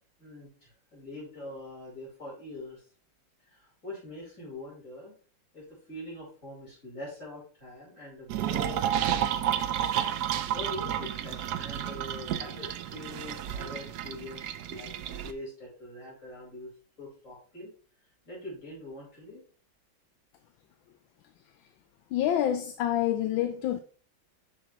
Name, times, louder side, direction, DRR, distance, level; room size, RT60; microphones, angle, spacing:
voice 1, 0.2-2.8 3.4-5.1 5.5-9.5 10.5-14.9 15.2-16.7 17.0-17.7 18.2-19.4, left 1 dB, 35° left, 4.9 m, -43 dB
sound 1, 8.3-15.3, right 10 dB, 80° right, 0.9 m, -31 dB
voice 2, 22.1-23.8, left 11 dB, 75° left, 1.3 m, -27 dB
7.8 x 6.3 x 3.0 m
omnidirectional pair, 2.3 m